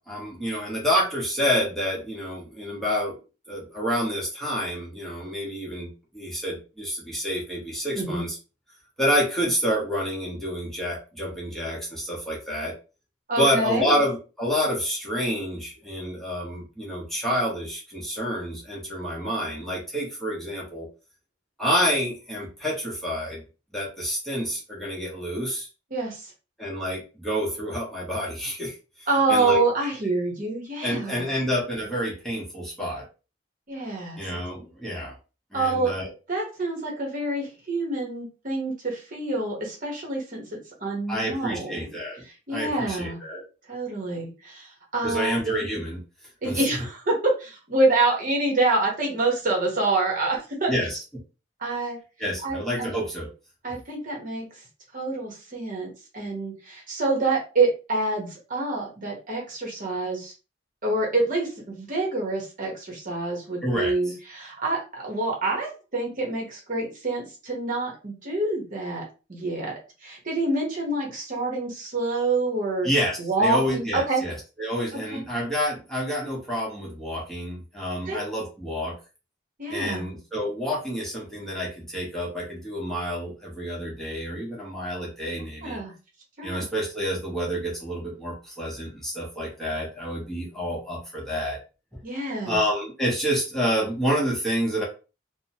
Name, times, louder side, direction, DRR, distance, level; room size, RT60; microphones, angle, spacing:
voice 1, 0.0-3.1 3.5-8.4 9.0-12.7 13.4-20.9 21.6-23.4 23.7-25.7 26.6-29.6 30.8-33.1 34.2-35.1 35.5-36.1 41.1-42.2 42.5-43.4 45.0-46.0 46.4-46.6 50.7-51.0 52.2-53.3 63.6-64.1 72.8-78.9 79.7-85.8 86.4-91.6 92.4-94.8, equal, ahead, -5 dB, 0.8 m, -28 dB
voice 2, 7.9-8.2 13.3-13.9 25.9-26.3 29.1-31.3 33.7-34.2 35.5-35.9 36.3-41.9 42.5-43.2 43.7-45.5 46.4-50.7 51.6-52.0 52.4-52.9 53.6-54.5 54.9-60.3 60.8-72.9 73.2-74.2 75.1-75.2 78.1-78.2 79.6-80.1 85.6-85.9 86.4-86.6 92.0-92.6, right 2 dB, 45° right, -1 dB, 0.9 m, -27 dB
2.8 x 2.0 x 2.7 m, 0.32 s
head